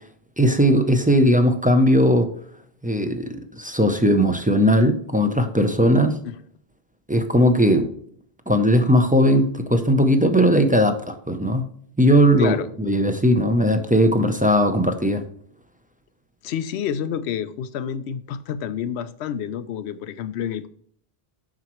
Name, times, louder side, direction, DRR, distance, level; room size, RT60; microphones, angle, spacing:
voice 1, 0.4-2.3 2.8-6.2 7.1-7.9 8.5-11.7 12.0-15.2, equal, 10° right, 0.5 m, -18 dB
voice 2, 12.4-12.7 16.4-20.7, left 8 dB, 90° left, 0.8 m, -29 dB
7.5 x 6.0 x 3.0 m
omnidirectional pair, 1.1 m